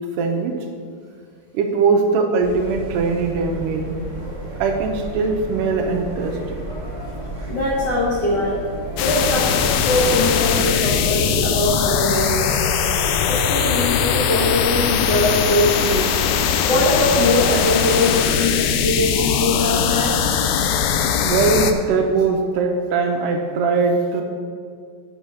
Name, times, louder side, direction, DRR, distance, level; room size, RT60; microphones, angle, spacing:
voice 1, 0.2-0.7 1.5-4.0 4.6-6.6 21.2-24.2, right 4 dB, 85° right, 3 dB, 2.2 m, -20 dB
sound 1, 2.4-16.2, right 2 dB, 20° right, 0.9 m, -33 dB
voice 2, 7.5-8.6 9.0-12.6 13.2-16.2 16.6-20.2, left 1 dB, 65° left, -6 dB, 1.0 m, -21 dB
sound 2, 9.0-21.7, left 8 dB, 80° left, 1.8 m, -20 dB
8.5 x 6.3 x 5.5 m, 2.2 s
omnidirectional pair, 3.9 m